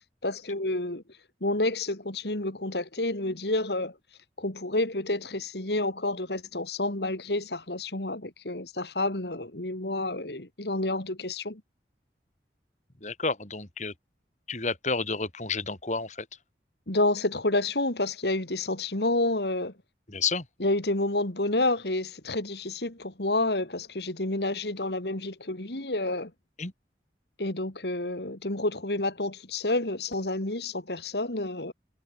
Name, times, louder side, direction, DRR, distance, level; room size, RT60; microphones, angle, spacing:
voice 1, 0.2-1.0 1.4-3.9 4.4-11.6 16.9-19.7 20.6-26.3 27.4-31.7, left 2 dB, 65° left, 2.9 m, -29 dB
voice 2, 13.0-13.9 14.5-16.3 20.1-20.5 26.6-26.7, left 4 dB, 40° left, 3.2 m, -30 dB
head